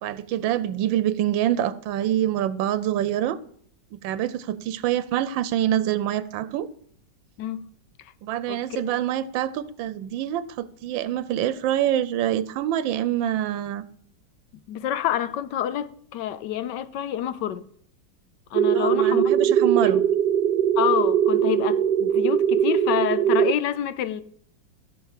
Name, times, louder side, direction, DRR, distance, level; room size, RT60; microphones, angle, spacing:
voice 1, 0.0-3.4 3.9-6.7 8.2-13.8 18.7-20.0, right 11 dB, 90° right, 1.4 m, -25 dB
voice 2, 8.5-9.0 14.7-17.7 18.5-19.5 19.8-19.9 20.8-24.2, left 11 dB, 75° left, 1.2 m, -28 dB
sound 1, 18.5-23.5, right 9 dB, 70° right, 1.2 m, -21 dB
15.0 x 5.8 x 7.4 m
omnidirectional pair, 2.0 m